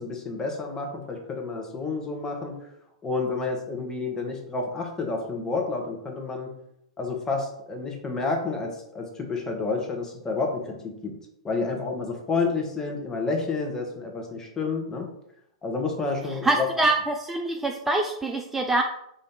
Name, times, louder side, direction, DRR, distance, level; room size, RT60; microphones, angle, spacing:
voice 1, 0.0-2.5 3.0-6.5 7.0-11.1 11.4-15.1 15.6-16.7, left 4 dB, 15° left, 1 dB, 1.0 m, -30 dB
voice 2, 16.4-18.8, right 2 dB, 10° right, 3 dB, 0.3 m, -24 dB
4.0 x 2.6 x 3.6 m, 0.76 s
figure-of-eight pair, 100°, 3 cm